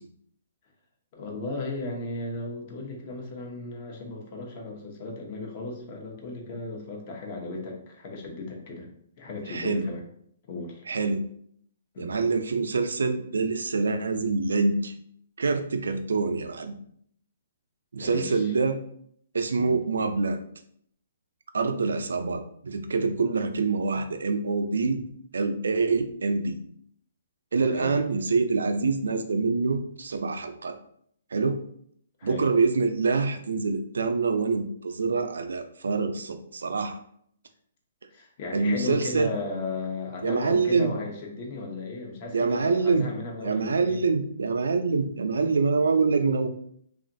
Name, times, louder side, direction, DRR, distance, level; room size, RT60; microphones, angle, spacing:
voice 1, 1.1-8.9 9.2-10.1 10.5-10.8 11.9-12.1 18.0-18.6 19.6-19.8 27.7-28.0 32.2-32.5 38.1-44.0, left 2 dB, 40° left, 0 dB, 0.8 m, -35 dB
voice 2, 9.5-9.9 10.9-11.2 12.0-14.9 15.4-16.7 17.9-18.8 19.3-20.4 21.5-25.0 25.3-26.6 27.5-30.7 31.3-31.6 32.2-37.0 38.5-39.3 40.2-40.9 42.3-43.1 43.4-46.5, right 4 dB, 90° right, 8 dB, 0.4 m, -25 dB
3.0 x 2.4 x 2.6 m, 0.66 s
hypercardioid pair, 150°, 0 cm